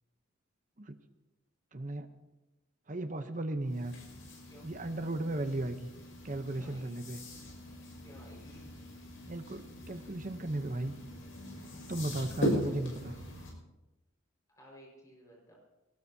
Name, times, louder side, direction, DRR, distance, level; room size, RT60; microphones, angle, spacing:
voice 1, 1.7-2.1 2.9-4.0 4.6-5.9 6.2-7.2 9.3-11.0 11.9-13.2, right 2 dB, 40° right, 9 dB, 0.8 m, -36 dB
sound 1, 3.6-13.5, equal, 75° left, 6.0 m, -40 dB
voice 2, 6.5-6.9 8.0-8.6 14.6-15.5, equal, 15° left, -3 dB, 5.1 m, -55 dB
22.5 x 18.0 x 2.8 m, 1.0 s
head